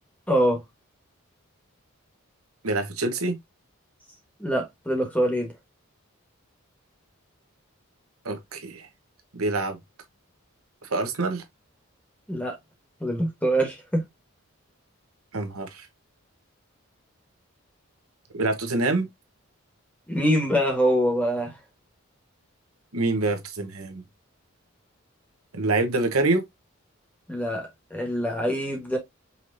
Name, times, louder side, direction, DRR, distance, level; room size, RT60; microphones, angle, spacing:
voice 1, 0.3-0.6 4.4-5.5 12.3-12.6 13.0-14.0 20.1-21.6 27.3-29.0, equal, 5° left, 1.3 m, -24 dB
voice 2, 2.6-3.4 8.2-8.9 9.3-9.8 10.8-11.4 15.3-15.9 18.3-19.1 22.9-24.0 25.5-26.4, right 2 dB, 85° right, 1.1 m, -26 dB
5.6 x 3.1 x 2.6 m
head